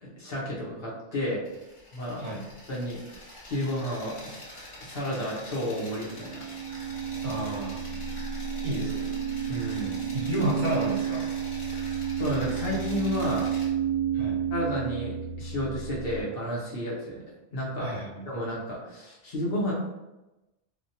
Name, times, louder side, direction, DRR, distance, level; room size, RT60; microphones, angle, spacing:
voice 1, 0.0-1.5 1.9-2.2 2.7-4.4 4.8-6.4 9.5-10.0 12.2-13.5 14.5-17.2 17.5-17.9 18.3-19.7, left 1 dB, 55° left, -5 dB, 1.0 m, -32 dB
sound 1, 1.4-13.7, left 1 dB, 35° left, 0.5 m, -45 dB
voice 2, 2.2-2.5 7.2-7.8 8.6-9.1 10.1-11.3 14.1-14.4 17.8-18.2, equal, 50° right, -4 dB, 0.8 m, -31 dB
sound 2, 6.1-16.2, right 8 dB, 75° right, 0.9 m, -31 dB
3.2 x 2.1 x 2.7 m, 0.99 s
omnidirectional pair, 1.2 m